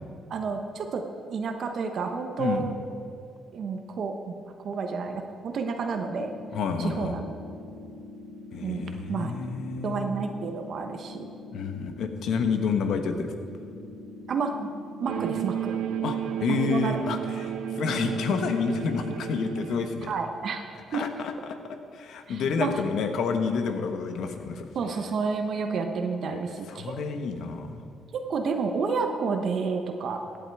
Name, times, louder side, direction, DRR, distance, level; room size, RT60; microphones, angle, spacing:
voice 1, 0.3-1.0 1.3-2.7 3.5-4.3 4.6-6.3 6.8-7.3 8.6-9.3 9.8-11.3 14.3-14.7 15.0-15.7 16.5-17.0 20.0-21.0 22.3-22.7 24.7-26.9 28.3-30.2, right 5 dB, 60° right, 5 dB, 1.0 m, -30 dB
sound 1, 5.9-15.9, left 2 dB, 55° left, 2.5 m, -44 dB
voice 2, 6.5-7.1 8.5-10.1 11.5-13.3 16.0-20.1 20.9-21.6 21.9-24.7 26.3-26.4 26.7-27.8, left 5 dB, 75° left, 7 dB, 1.1 m, -29 dB
sound 2, 15.1-20.1, right 9 dB, 85° right, 0.5 m, -33 dB
15.5 x 8.7 x 4.7 m, 2.4 s
cardioid pair, 90°, 0 cm